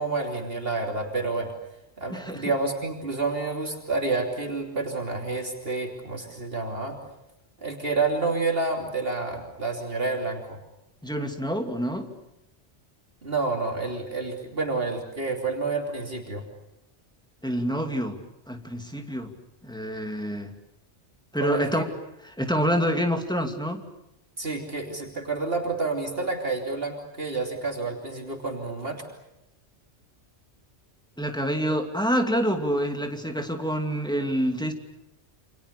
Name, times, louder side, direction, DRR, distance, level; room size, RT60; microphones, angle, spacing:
voice 1, 0.0-1.5 2.0-7.0 7.6-10.6 13.2-16.4 21.4-21.8 24.4-29.0, right 3 dB, 55° right, 2 dB, 3.3 m, -29 dB
voice 2, 2.1-2.5 11.0-12.1 17.4-18.2 18.5-19.3 19.6-20.5 21.3-21.9 22.2-23.8 31.2-34.7, equal, 5° left, 4 dB, 2.7 m, -27 dB
29.0 x 27.0 x 6.8 m, 0.90 s
omnidirectional pair, 1.2 m